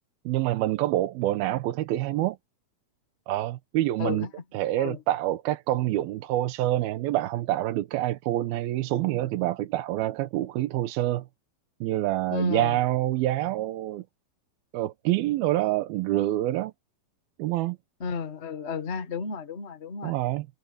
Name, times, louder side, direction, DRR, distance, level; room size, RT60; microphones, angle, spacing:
voice 1, 0.3-2.4 3.3-4.3 4.5-11.3 11.8-14.0 14.7-16.7 17.4-17.8 20.0-20.5, right 15 dB, 85° right, 2.8 m, -26 dB
voice 2, 4.0-4.3 4.8-5.0 12.3-12.8 18.0-20.1, left 5 dB, 35° left, 1.1 m, -32 dB
omnidirectional pair, 4.3 m